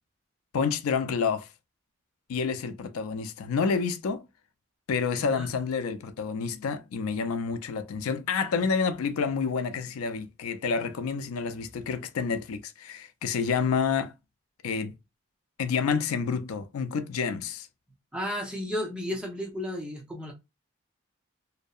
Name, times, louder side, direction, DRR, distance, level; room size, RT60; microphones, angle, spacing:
voice 1, 0.5-1.5 2.3-4.2 4.9-14.1 14.6-14.9 15.6-17.7, left 5 dB, 85° left, 0.4 m, -29 dB
voice 2, 5.2-5.5 18.1-20.3, left 1 dB, 5° right, 0.5 m, -33 dB
2.6 x 2.1 x 2.3 m
head